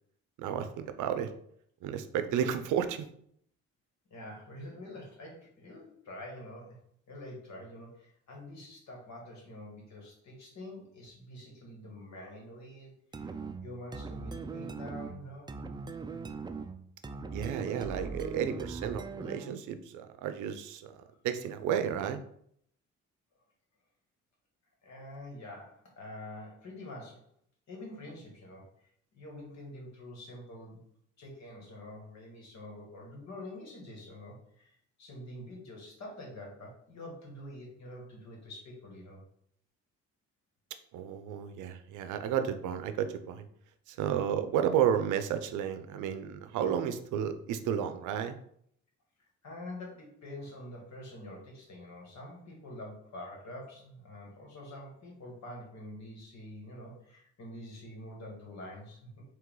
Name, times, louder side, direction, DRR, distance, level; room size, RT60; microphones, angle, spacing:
voice 1, 0.4-1.3 1.8-3.1 17.3-22.2 40.9-43.5 43.9-48.3, right 9 dB, 90° right, 9 dB, 0.5 m, -32 dB
voice 2, 4.1-6.8 7.1-15.5 24.8-27.3 27.7-30.8 31.2-39.2 49.4-59.2, left 1 dB, 65° left, -1 dB, 2.0 m, -46 dB
sound 1, 13.1-19.6, right 4 dB, 15° right, 0.3 m, -40 dB
4.7 x 3.0 x 3.8 m, 0.67 s
cardioid pair, 90°, 30 cm